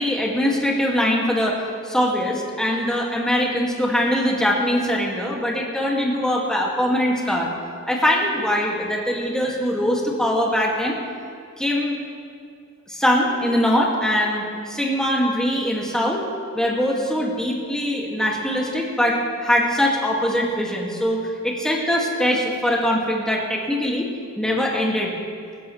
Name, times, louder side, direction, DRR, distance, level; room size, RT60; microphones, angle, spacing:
voice 1, 0.0-7.5 7.9-11.0 11.6-12.0 12.9-16.2 16.5-24.1 24.4-25.1, equal, ahead, -3 dB, 2.1 m, -22 dB
20.0 x 15.0 x 3.2 m, 2.3 s
wide cardioid pair, 125°, 30 cm